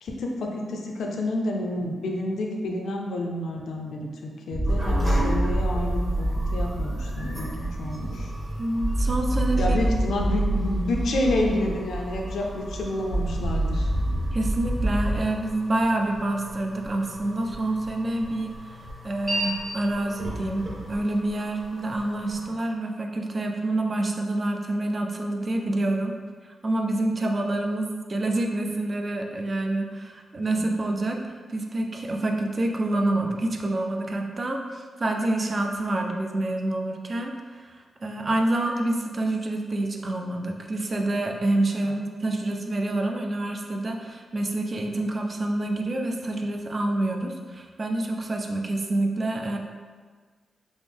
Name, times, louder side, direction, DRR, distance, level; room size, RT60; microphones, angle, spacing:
voice 1, 0.0-8.3 9.6-13.9 22.4-22.5 30.5-30.6 41.8-41.9, left 1 dB, 85° left, 0 dB, 0.4 m, -29 dB
sound 1, 4.5-15.2, right 1 dB, 90° right, 0.8 m, -27 dB
sound 2, 4.6-22.5, right 1 dB, 15° right, 0.7 m, -38 dB
voice 2, 8.6-9.8 14.3-18.8 19.0-26.1 26.4-49.6, right 2 dB, 35° right, 2 dB, 0.3 m, -27 dB
3.5 x 2.0 x 3.3 m, 1.5 s
wide cardioid pair, 110°, 0 cm